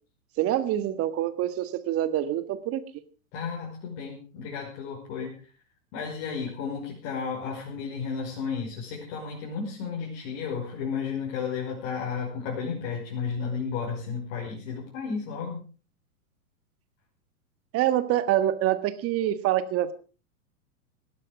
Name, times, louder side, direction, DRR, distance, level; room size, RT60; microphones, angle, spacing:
voice 1, 0.4-2.8 17.7-19.9, right 12 dB, 30° right, 13 dB, 1.7 m, -26 dB
voice 2, 3.3-5.3 5.9-15.6, left 6 dB, 45° left, -3 dB, 5.6 m, -33 dB
18.0 x 12.0 x 5.0 m, 0.38 s
hypercardioid pair, 105°, 43 cm